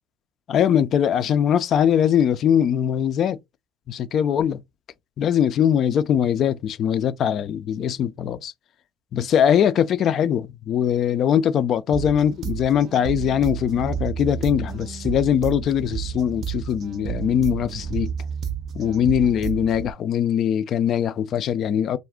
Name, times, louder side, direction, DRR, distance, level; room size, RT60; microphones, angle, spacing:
voice 1, 0.5-3.4 3.9-4.6 5.2-8.5 9.1-18.1 18.7-22.0, left 9 dB, 50° left, 0.3 m, -21 dB
sound 1, 11.9-19.9, right 9 dB, 50° right, 0.5 m, -31 dB
2.4 x 2.1 x 3.6 m
hypercardioid pair, 80°, 0 cm